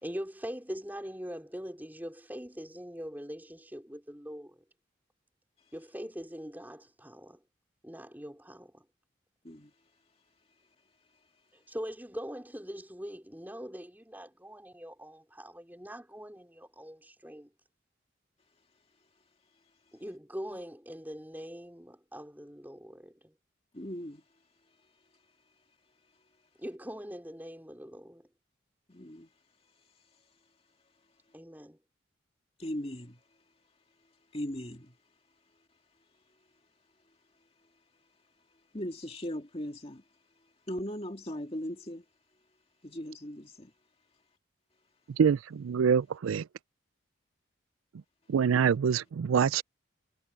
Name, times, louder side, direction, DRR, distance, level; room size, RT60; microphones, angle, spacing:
voice 1, 0.0-4.6 5.7-7.4 7.8-8.9 11.5-17.5 19.9-23.3 26.6-28.3 31.3-31.8, equal, 10° right, 3.5 m, -42 dB
voice 2, 23.7-24.2 28.9-29.3 32.6-33.2 34.3-35.0 38.7-40.0 40.7-42.0 42.8-43.7, equal, 30° left, 2.4 m, -38 dB
voice 3, 45.2-46.4 48.3-49.6, right 7 dB, 90° right, 0.4 m, -25 dB
head